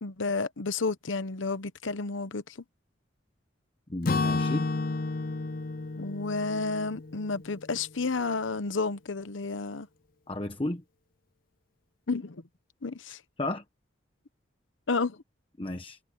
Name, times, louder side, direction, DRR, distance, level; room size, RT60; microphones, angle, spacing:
voice 1, 0.0-2.4 6.0-9.9 12.1-12.4 12.8-13.2 14.9-15.2, left 4 dB, 85° left, 0.9 m, -31 dB
voice 2, 3.9-4.7 10.3-10.8 13.4-13.6 15.6-16.0, left 1 dB, 30° left, 1.1 m, -33 dB
Acoustic guitar / Strum, 4.0-8.0, left 3 dB, 50° left, 0.5 m, -31 dB
head